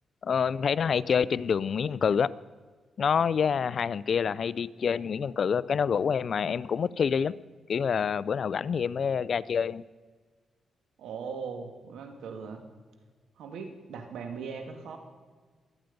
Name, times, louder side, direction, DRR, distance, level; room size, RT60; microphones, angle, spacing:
voice 1, 0.2-2.3 3.0-7.4 7.7-9.8, left 6 dB, 55° left, 19 dB, 0.4 m, -27 dB
voice 2, 11.0-12.6 13.4-15.0, right 5 dB, 85° right, 5 dB, 2.0 m, -39 dB
23.5 x 9.2 x 5.3 m, 1.5 s
cardioid pair, 85°, 0 cm